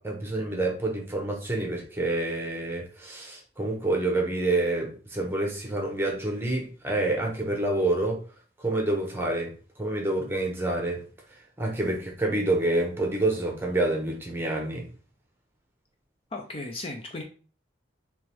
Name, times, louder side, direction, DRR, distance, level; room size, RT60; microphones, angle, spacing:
voice 1, 0.0-8.2 8.6-9.5 9.8-11.0 11.6-14.9, right 2 dB, 10° right, 1 dB, 1.0 m, -27 dB
voice 2, 16.3-17.2, left 2 dB, 30° left, 3 dB, 0.5 m, -35 dB
3.7 x 3.1 x 4.5 m, 0.38 s
head